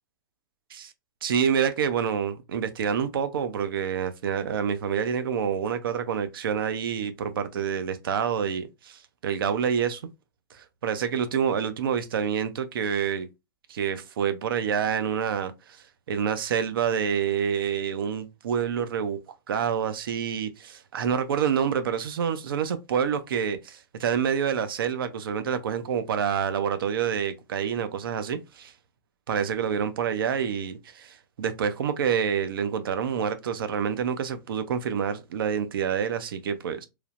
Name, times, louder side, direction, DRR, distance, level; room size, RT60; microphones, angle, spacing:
voice 1, 1.2-10.0 10.5-13.3 13.7-15.5 16.1-19.2 19.5-28.7 29.3-36.9, right 7 dB, 75° right, 0.5 m, -27 dB
3.1 x 2.0 x 2.4 m
hypercardioid pair, 115°, 12 cm